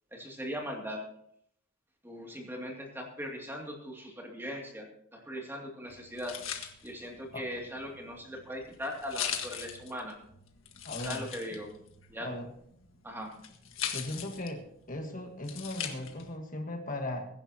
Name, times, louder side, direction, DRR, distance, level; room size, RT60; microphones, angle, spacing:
voice 1, 0.1-1.0 2.0-6.4 6.8-10.2 11.0-11.7 12.1-12.4 13.0-13.3, equal, 10° right, 0 dB, 2.5 m, -39 dB
sound 1, 5.9-16.4, left 9 dB, 80° left, 1.6 m, -41 dB
voice 2, 10.8-11.2 12.2-12.5 13.9-14.6 14.9-17.3, left 1 dB, 40° left, 3 dB, 1.5 m, -37 dB
22.5 x 10.5 x 2.9 m, 0.68 s
head